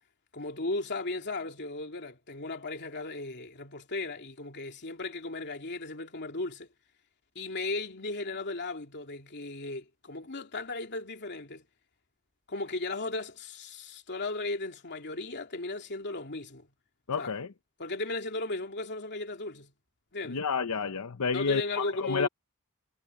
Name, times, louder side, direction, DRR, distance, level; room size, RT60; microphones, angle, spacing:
voice 1, 0.3-6.7 7.3-11.6 12.5-16.7 17.2-17.3 17.8-19.7 20.1-20.4 21.3-22.3, left 2 dB, 50° left, 3.0 m, -36 dB
voice 2, 17.1-17.5 20.2-22.3, left 5 dB, 75° left, 0.8 m, -30 dB
head